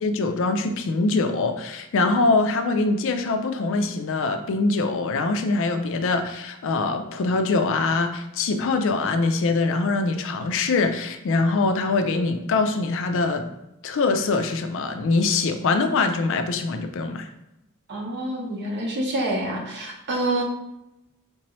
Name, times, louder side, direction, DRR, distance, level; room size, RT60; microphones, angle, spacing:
voice 1, 0.0-13.5 13.8-17.3, left 3 dB, 60° left, 7 dB, 0.4 m, -23 dB
voice 2, 17.9-20.4, right 1 dB, 50° right, 0 dB, 0.8 m, -27 dB
3.6 x 2.9 x 3.0 m, 0.91 s
head